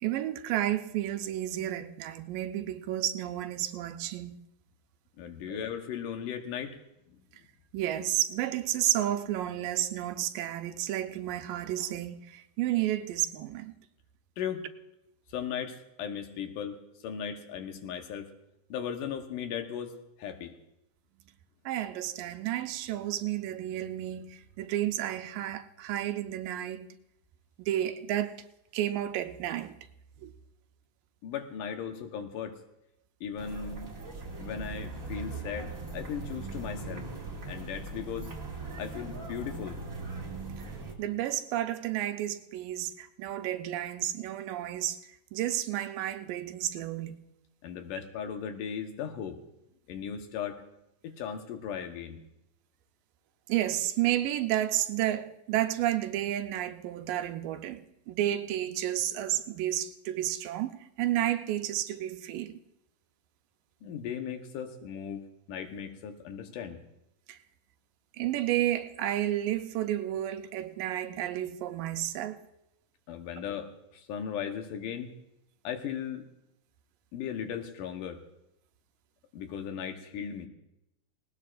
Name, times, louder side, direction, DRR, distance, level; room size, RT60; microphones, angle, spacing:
voice 1, 0.0-4.4 5.5-5.6 7.7-13.7 21.7-26.9 27.6-28.4 28.7-29.7 30.2-30.3 41.0-45.0 45.3-47.2 53.5-62.5 67.3-67.4 68.2-72.4, right 13 dB, 90° right, 2.4 m, -31 dB
voice 2, 5.2-6.8 14.4-14.6 15.3-16.8 17.0-18.3 18.7-19.9 20.2-20.5 31.2-32.5 33.2-33.9 34.4-37.0 37.5-38.3 38.8-39.8 47.6-49.4 49.9-50.6 51.0-52.2 63.8-66.8 73.1-75.1 75.6-76.2 77.1-78.2 79.3-80.5, left 8 dB, 75° left, 2.6 m, -37 dB
sound 1, 33.4-40.9, right 3 dB, 30° right, 1.8 m, -40 dB
19.0 x 18.5 x 2.5 m
omnidirectional pair, 3.9 m